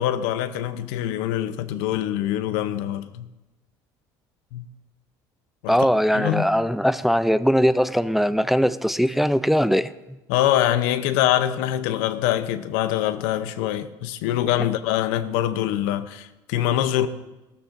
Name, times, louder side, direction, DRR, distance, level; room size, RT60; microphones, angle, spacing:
voice 1, 0.0-3.3 4.5-4.7 5.6-5.8 6.1-6.5 10.3-17.1, left 12 dB, 90° left, 0.7 m, -24 dB
voice 2, 5.7-9.9, equal, ahead, 0.4 m, -20 dB
17.0 x 13.5 x 2.6 m
supercardioid pair, 100°, 10 cm